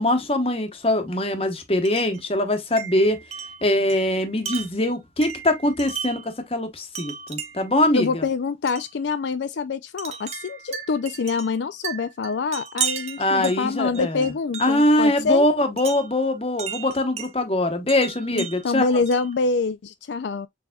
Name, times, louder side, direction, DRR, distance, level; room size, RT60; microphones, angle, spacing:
voice 1, 0.0-3.2 3.6-8.2 13.2-14.3 14.6-18.9, left 1 dB, 30° left, 1.0 m, -22 dB
Wind chime, 1.8-2.2 2.8-6.3 6.9-7.8 8.7-8.9 10.0-14.9 15.8-17.3 17.9-19.4, right 7 dB, 35° right, 0.8 m, -35 dB
voice 2, 7.9-15.5 18.3-20.5, left 4 dB, 75° left, 0.4 m, -25 dB
6.8 x 3.3 x 2.3 m
head